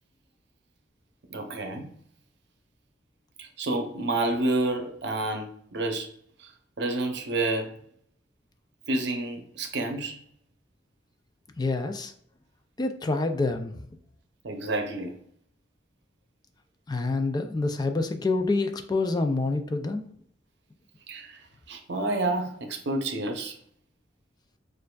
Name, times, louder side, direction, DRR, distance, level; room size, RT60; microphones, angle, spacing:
voice 1, 1.3-1.9 3.4-6.1 6.8-7.7 8.9-10.2 14.4-15.1 21.1-21.4 21.7-23.5, right 2 dB, 65° right, 0.7 m, -29 dB
voice 2, 11.6-12.1 12.8-13.7 16.9-20.1, left 3 dB, 20° left, 0.3 m, -27 dB
6.5 x 2.5 x 2.3 m
head